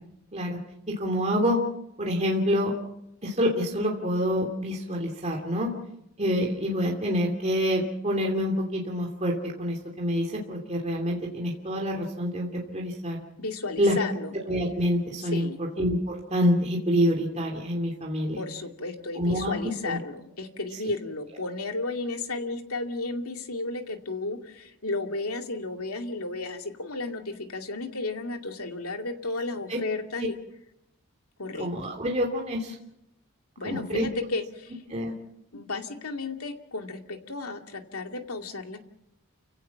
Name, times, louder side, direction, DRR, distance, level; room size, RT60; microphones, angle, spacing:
voice 1, 0.9-1.6 2.0-2.7 3.2-5.7 6.2-13.2 13.8-13.9 14.5-15.5 15.8-18.4 19.2-20.0 31.6-32.8 33.6-34.1 34.9-35.1, equal, 30° right, 0 dB, 2.8 m, -27 dB
voice 2, 13.4-14.3 15.2-15.6 18.4-30.4 31.4-31.7 33.6-34.8 35.5-38.8, left 3 dB, 80° left, 4 dB, 2.3 m, -33 dB
30.0 x 17.0 x 5.9 m, 0.81 s
head